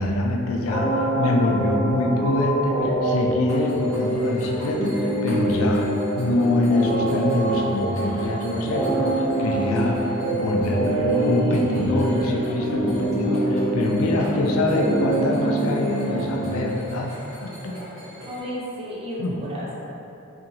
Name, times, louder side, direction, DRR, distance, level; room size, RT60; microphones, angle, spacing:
voice 1, 0.0-5.9 6.2-17.1 17.4-17.8 19.2-19.3, left 1 dB, 75° left, 0 dB, 0.4 m, -25 dB
sound 1, 0.7-16.7, right 1 dB, 50° left, 0.9 m, -25 dB
sound 2, 3.5-18.4, equal, 65° right, 1.1 m, -40 dB
voice 2, 18.3-19.7, equal, 25° right, -6 dB, 0.5 m, -33 dB
2.8 x 2.7 x 2.6 m, 2.9 s
head